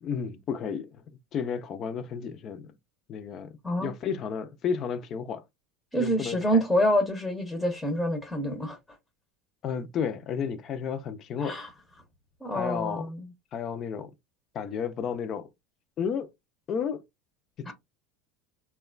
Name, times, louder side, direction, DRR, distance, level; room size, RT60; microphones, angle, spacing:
voice 1, 0.0-1.0 1.3-2.7 3.1-5.4 6.0-6.6 9.6-11.6 12.5-13.1 13.5-14.1 14.5-15.5 16.0-16.3 16.7-17.0 17.6-17.7, left 7 dB, 40° left, 0.4 m, -32 dB
voice 2, 5.9-8.8 11.4-11.7 12.4-13.3 17.7-17.8, equal, 10° left, 0.7 m, -27 dB
2.9 x 2.2 x 2.4 m
supercardioid pair, 120°, 0 cm